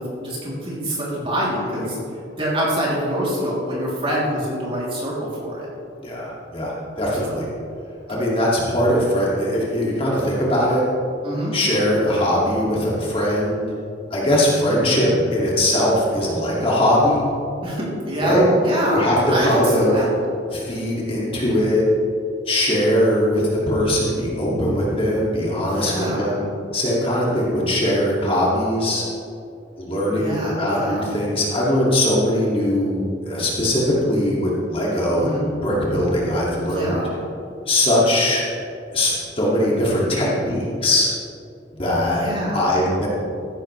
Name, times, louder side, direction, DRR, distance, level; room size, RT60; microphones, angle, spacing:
voice 1, 0.0-2.0 2.4-5.7 7.1-7.2 11.2-11.5 17.6-20.1 25.7-26.4 30.1-31.1 35.1-35.4 36.7-37.1 40.1-40.3 42.1-42.7, equal, 30° right, -6 dB, 3.1 m, -25 dB
voice 2, 6.0-7.5 8.1-10.8 11.5-13.7 14.1-17.2 18.2-18.4 18.9-19.9 20.5-21.8 22.5-26.4 26.7-29.0 29.8-37.0 37.7-38.5 38.9-41.1 41.7-42.2 42.5-43.1, left 1 dB, 30° left, -5 dB, 2.4 m, -20 dB
14.5 x 11.0 x 3.3 m, 2.5 s
head